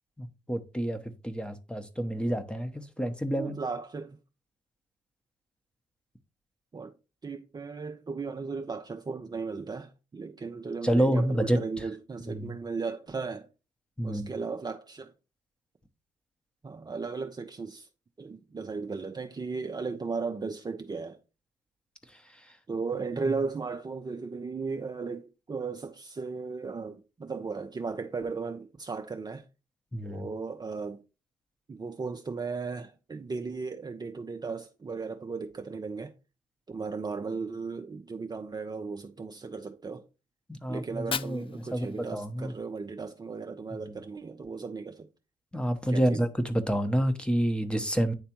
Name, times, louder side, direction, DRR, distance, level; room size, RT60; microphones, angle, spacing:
voice 1, 0.2-3.5 10.8-11.6 12.3-12.5 14.0-14.3 29.9-30.3 40.5-42.5 43.8-44.0 45.5-48.1, right 1 dB, 5° left, 0.9 m, -28 dB
voice 2, 3.3-4.2 6.7-6.9 7.2-13.5 14.0-15.1 16.6-17.9 18.2-21.2 22.7-29.4 30.0-31.0 31.7-36.1 36.7-40.1 40.7-45.1 45.9-46.2, right 4 dB, 25° right, 0.6 m, -36 dB
Fire, 40.8-42.8, left 7 dB, 35° left, 0.4 m, -39 dB
9.6 x 3.3 x 2.9 m
hypercardioid pair, 55°, 16 cm